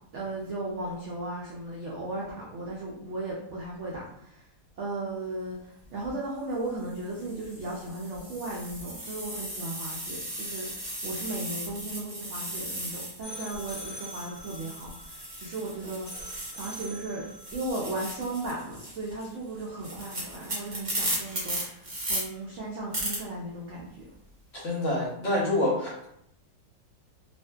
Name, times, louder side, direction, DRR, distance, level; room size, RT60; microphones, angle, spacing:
voice 1, 0.1-4.5 4.8-17.2 17.5-24.1, right 2 dB, 80° right, -4 dB, 0.6 m, -36 dB
sound 1, 5.9-6.1 6.9-17.0 17.3-22.2 22.9-23.2, right 1 dB, 35° right, 0.5 m, -37 dB
sound 2, 13.2-18.5, equal, 35° left, 0.4 m, -44 dB
voice 2, 24.6-26.0, left 1 dB, 60° left, -5 dB, 0.9 m, -27 dB
2.6 x 2.5 x 2.2 m, 0.76 s
omnidirectional pair, 1.8 m